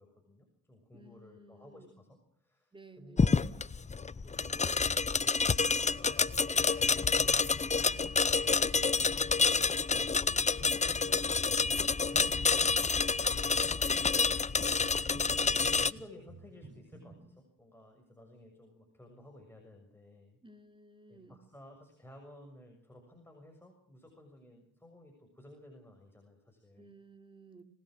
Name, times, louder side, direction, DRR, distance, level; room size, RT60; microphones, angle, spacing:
voice 1, 0.0-3.4 4.2-4.8 5.7-8.6 10.7-14.1 15.0-20.4 21.1-26.9, left 1 dB, 5° left, 2 dB, 6.7 m, -56 dB
voice 2, 0.9-1.9 2.7-3.5 20.4-21.5 26.8-27.6, right 2 dB, 15° right, 7 dB, 3.3 m, -56 dB
sound 1, 3.2-15.9, left 5 dB, 25° left, 0.8 m, -28 dB
sound 2, 7.5-8.1 8.4-17.2, right 3 dB, 40° right, 7.9 m, -53 dB
26.0 x 19.5 x 6.4 m, 0.65 s
cardioid pair, 90°, 30 cm